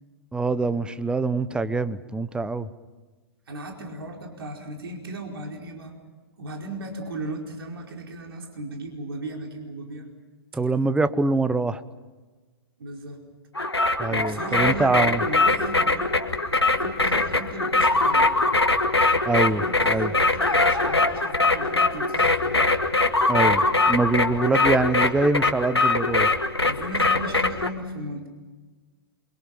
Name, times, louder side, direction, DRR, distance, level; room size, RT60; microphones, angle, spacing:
voice 1, 0.3-2.7 10.5-11.8 14.0-15.2 19.3-20.1 23.3-26.4, right 3 dB, 5° right, 15 dB, 1.0 m, -24 dB
voice 2, 3.5-5.9 6.4-10.1 12.8-13.2 14.1-16.1 16.8-18.3 19.5-22.6 26.7-28.3, right 2 dB, 70° right, 2 dB, 4.8 m, -36 dB
sound 1, 13.5-27.7, left 3 dB, 90° left, 2.0 m, -22 dB
28.5 x 25.0 x 5.6 m, 1.3 s
figure-of-eight pair, 110°, 13 cm